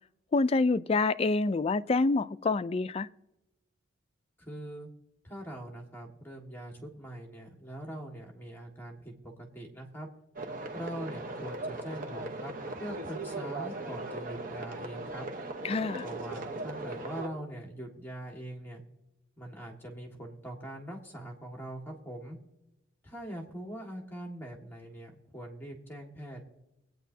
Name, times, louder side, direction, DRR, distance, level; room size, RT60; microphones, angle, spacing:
voice 1, 0.3-3.1 15.6-16.1, left 3 dB, 30° left, 0.3 m, -27 dB
voice 2, 4.4-4.9 5.2-9.1 9.4-10.1 10.7-15.3 16.0-18.8 19.4-22.4 23.0-26.5, right 1 dB, 10° left, 1.7 m, -42 dB
sound 1, 10.4-17.3, right 2 dB, 45° right, 1.0 m, -38 dB
22.5 x 9.1 x 2.7 m
head